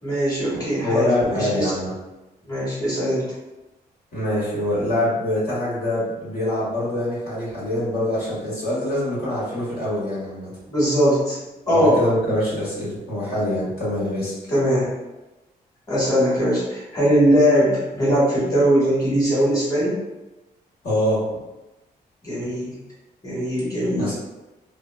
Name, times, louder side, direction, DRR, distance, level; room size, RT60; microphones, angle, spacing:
voice 1, 0.0-1.7 2.4-3.2 10.7-11.4 11.7-12.0 14.5-14.9 15.9-20.0 22.2-22.8 23.2-24.1, equal, 20° left, -9 dB, 1.5 m, -20 dB
voice 2, 0.5-1.9 4.1-10.5 11.7-14.3 20.8-21.2 24.0-24.1, left 1 dB, 70° left, -10 dB, 1.5 m, -24 dB
2.8 x 2.1 x 2.2 m, 1.0 s
cardioid pair, 75°, 17 cm